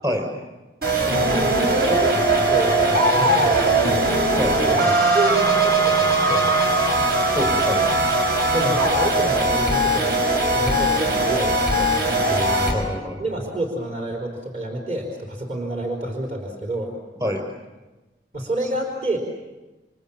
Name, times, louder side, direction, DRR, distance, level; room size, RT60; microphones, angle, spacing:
sound 1, 0.8-12.7, right 2 dB, 60° right, 6.9 m, -20 dB
voice 1, 0.9-2.2 2.5-4.1 4.8-6.5 8.5-10.2 10.5-12.4 13.2-16.9 18.3-19.2, right 1 dB, 40° right, 1 dB, 4.4 m, -28 dB
voice 2, 7.3-7.9 12.3-13.2 17.2-17.4, equal, 20° right, 4 dB, 6.4 m, -26 dB
29.0 x 27.0 x 7.4 m, 1.1 s
head